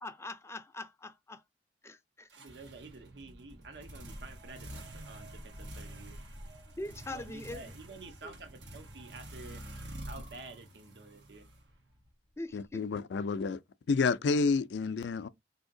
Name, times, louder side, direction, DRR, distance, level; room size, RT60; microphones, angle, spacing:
voice 1, 0.0-1.4 1.8-2.3 6.8-7.7 8.2-8.3 12.4-12.8, left 2 dB, 15° left, 0.4 m, -42 dB
sound 1, 2.3-12.1, right 1 dB, 85° right, 1.1 m, -48 dB
voice 2, 2.4-6.2 7.1-9.7 10.0-11.5, right 3 dB, 65° right, 0.7 m, -50 dB
sound 2, 2.6-10.3, equal, 40° right, 1.1 m, -56 dB
voice 3, 12.5-13.6 13.9-15.3, left 4 dB, 75° left, 0.4 m, -29 dB
3.6 x 2.8 x 2.6 m
head